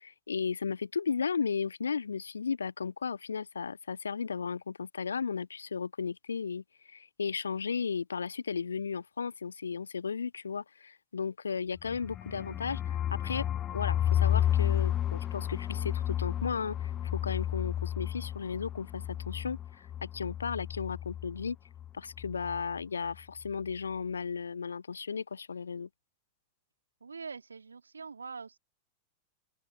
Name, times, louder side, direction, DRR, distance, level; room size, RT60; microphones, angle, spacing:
voice 1, 0.0-13.4 13.7-21.6 21.9-25.9, left 5 dB, 75° left, 1.5 m, -35 dB
sound 1, 11.8-21.5 21.8-21.9 22.2-22.6, left 11 dB, 30° left, 0.4 m, -32 dB
voice 2, 27.0-28.6, right 5 dB, 75° right, 2.7 m, -43 dB
open air
figure-of-eight pair, 90°, 0 cm